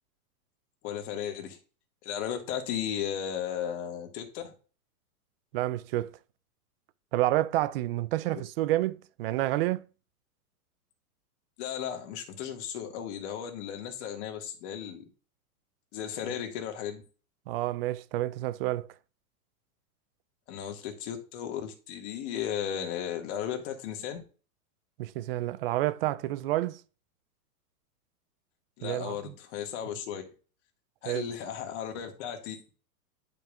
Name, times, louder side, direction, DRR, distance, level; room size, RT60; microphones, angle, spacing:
voice 1, 0.8-1.6 2.0-4.5 8.3-8.4 11.6-15.0 15.9-17.0 20.5-24.2 28.8-30.2 31.0-32.6, left 9 dB, 50° left, 1.9 m, -35 dB
voice 2, 5.5-6.1 7.1-9.8 17.5-18.9 25.0-26.8 28.8-29.3 31.0-31.3, right 15 dB, 40° right, 0.4 m, -29 dB
10.5 x 5.4 x 2.5 m
hypercardioid pair, 130°, 46 cm